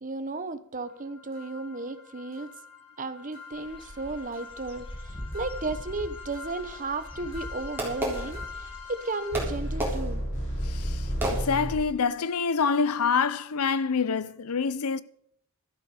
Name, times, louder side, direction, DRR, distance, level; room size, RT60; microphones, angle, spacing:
voice 1, 0.0-2.5 3.0-10.2, right 3 dB, 35° right, 1.0 m, -34 dB
sound 1, 1.3-11.7, equal, 55° left, 5.9 m, -36 dB
Dog / Bird, 3.5-9.8, equal, 25° left, 1.9 m, -42 dB
Fireworks, 6.7-8.9 9.3-12.0, right 1 dB, 10° right, 3.8 m, -34 dB
voice 2, 10.7-11.1 11.3-15.0, left 5 dB, 80° left, 0.6 m, -26 dB
12.5 x 11.5 x 4.9 m
head